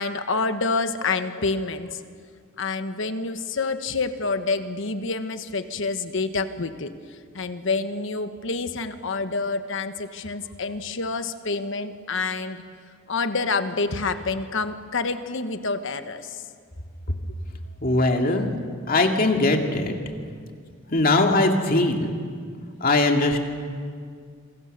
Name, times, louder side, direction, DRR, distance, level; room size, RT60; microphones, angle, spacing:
voice 1, 0.0-2.0 2.6-6.9 7.3-12.6 13.1-16.4, left 3 dB, 65° left, 9 dB, 1.3 m, -27 dB
voice 2, 17.8-18.5 18.9-19.9 20.9-22.1 22.8-23.4, left 2 dB, 45° left, 3 dB, 2.3 m, -20 dB
27.5 x 22.5 x 6.7 m, 2.1 s
head